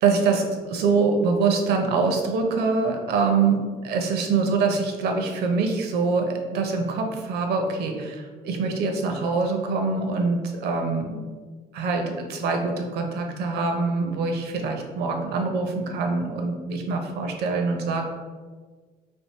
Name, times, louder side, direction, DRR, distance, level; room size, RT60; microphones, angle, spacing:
voice 1, 0.0-11.2 11.7-18.0, right 4 dB, 75° right, 3 dB, 0.7 m, -24 dB
3.5 x 2.6 x 4.2 m, 1.5 s
cardioid pair, 110°, 17 cm